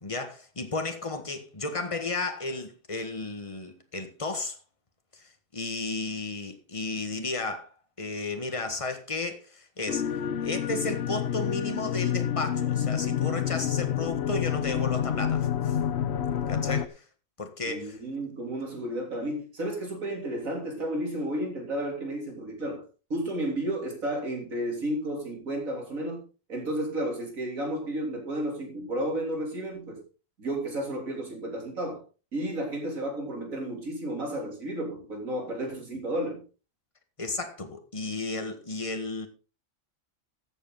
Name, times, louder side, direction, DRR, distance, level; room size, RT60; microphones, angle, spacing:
voice 1, 0.0-4.6 5.5-7.7 8.0-10.0 10.4-15.8 16.5-17.0 17.4-18.0 37.2-39.3, left 3 dB, 25° left, 1.7 m, -33 dB
sound 1, 9.9-16.9, left 9 dB, 60° left, 1.0 m, -28 dB
voice 2, 17.6-22.8 23.1-26.2 26.5-30.0 30.4-32.0 32.3-36.4, right 1 dB, 85° right, 3.9 m, -32 dB
14.5 x 8.2 x 4.0 m
omnidirectional pair, 1.4 m